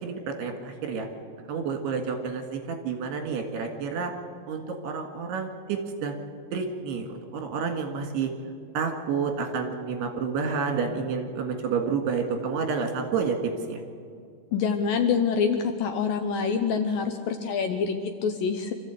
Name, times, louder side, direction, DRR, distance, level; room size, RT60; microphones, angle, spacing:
voice 1, 0.0-1.1 1.5-4.1 4.5-6.2 6.5-8.3 8.7-13.8, right 5 dB, 75° right, 4 dB, 4.0 m, -29 dB
voice 2, 14.5-18.7, left 6 dB, 70° left, 6 dB, 2.3 m, -26 dB
26.0 x 14.0 x 8.4 m, 2.2 s
omnidirectional pair, 4.9 m